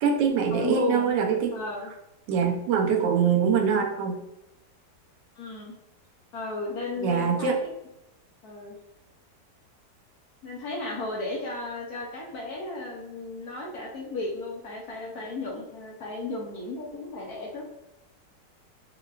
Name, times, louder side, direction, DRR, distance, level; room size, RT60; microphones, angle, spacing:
voice 1, 0.0-1.5 2.3-4.2 7.0-7.6, right 6 dB, 90° right, 3 dB, 1.3 m, -24 dB
voice 2, 0.5-1.1 1.5-1.9 2.9-3.2 5.4-5.7 6.3-7.7 8.4-8.8 10.4-17.6, left 2 dB, 65° left, -2 dB, 1.1 m, -34 dB
5.7 x 2.2 x 2.3 m, 0.89 s
omnidirectional pair, 1.9 m